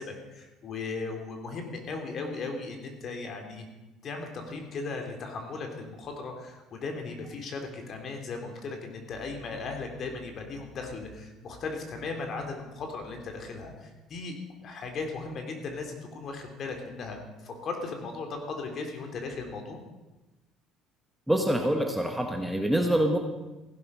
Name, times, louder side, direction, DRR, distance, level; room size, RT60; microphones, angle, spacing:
voice 1, 0.0-3.7 4.0-14.3 14.6-19.8, left 3 dB, 45° left, 4 dB, 3.1 m, -37 dB
voice 2, 21.3-23.2, right 1 dB, 5° right, 3 dB, 1.4 m, -25 dB
16.0 x 11.0 x 5.6 m, 1.1 s
cardioid pair, 125°, 0 cm